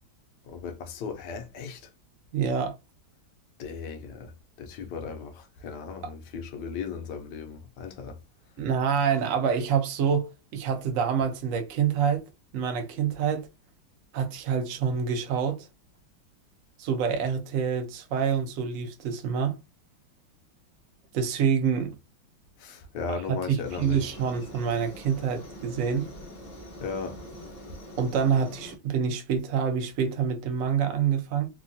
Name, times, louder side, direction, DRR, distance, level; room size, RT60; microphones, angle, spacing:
voice 1, 0.5-1.8 3.6-4.3 4.6-8.2 22.6-24.0 26.8-27.2, left 5 dB, 75° left, 1.0 m, -36 dB
voice 2, 2.3-2.7 6.0-6.1 8.6-12.2 12.5-13.5 14.1-15.7 16.8-19.6 21.1-21.9 23.1-26.1 28.0-31.5, right 7 dB, 70° right, 0.8 m, -27 dB
Aircraft, 23.6-28.8, equal, 35° left, 0.6 m, -44 dB
3.4 x 2.2 x 2.6 m
omnidirectional pair, 2.2 m